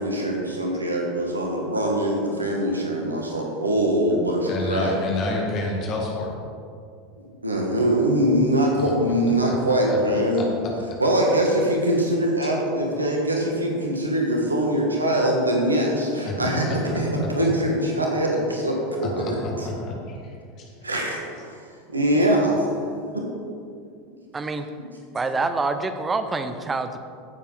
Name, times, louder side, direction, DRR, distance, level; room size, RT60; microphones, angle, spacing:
voice 1, 0.0-5.0 7.2-10.5 11.0-19.7 20.8-21.6 21.9-22.7 23.1-23.2, right 1 dB, 90° right, 0 dB, 1.6 m, -23 dB
voice 2, 4.5-6.3 8.8-8.9 9.5-9.6 10.3-10.5 12.4-12.5 16.2-17.3 18.9-20.7, left 2 dB, 45° left, -1 dB, 2.1 m, -29 dB
voice 3, 24.3-24.7 25.1-27.0, right 3 dB, 20° right, 9 dB, 0.9 m, -26 dB
15.5 x 7.2 x 4.0 m, 2.3 s
figure-of-eight pair, 80°, 0 cm